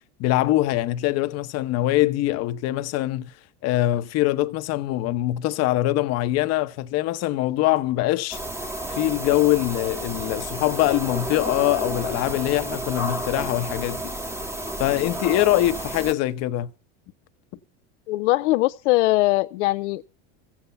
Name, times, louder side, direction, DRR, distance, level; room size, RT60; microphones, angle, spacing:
voice 1, 0.2-3.3 3.6-8.4 8.9-14.1 14.8-16.7, left 15 dB, 45° left, 0.9 m, -23 dB
sound 1, 8.3-16.1, right 1 dB, 5° right, 1.0 m, -31 dB
voice 2, 18.1-20.0, left 19 dB, 85° left, 0.6 m, -21 dB
14.5 x 8.7 x 6.8 m
supercardioid pair, 135°, 35 cm